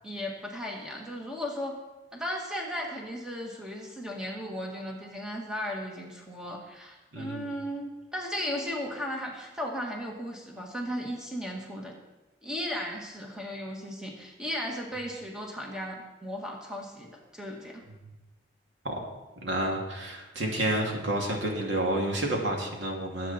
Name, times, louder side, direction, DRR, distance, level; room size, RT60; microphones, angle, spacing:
voice 1, 0.0-1.8 2.1-11.9 12.4-17.8, equal, 5° right, -1 dB, 1.9 m, -36 dB
voice 2, 7.1-7.5 18.8-19.0 19.4-23.3, right 1 dB, 80° right, 0 dB, 2.7 m, -30 dB
21.0 x 8.4 x 4.4 m, 1.1 s
head